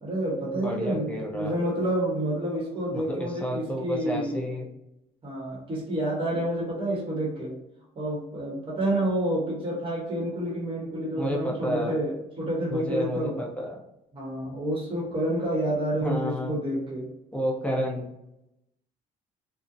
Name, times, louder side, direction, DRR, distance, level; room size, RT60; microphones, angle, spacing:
voice 1, 0.0-4.5 5.2-7.6 8.0-13.4 14.1-17.1, right 1 dB, 30° right, -3 dB, 0.9 m, -29 dB
voice 2, 0.5-1.5 2.9-4.7 11.1-12.0 12.7-13.8 16.0-16.6 17.3-18.1, equal, 5° left, -1 dB, 0.6 m, -31 dB
2.6 x 2.0 x 2.5 m, 0.87 s
cardioid pair, 110°, 17 cm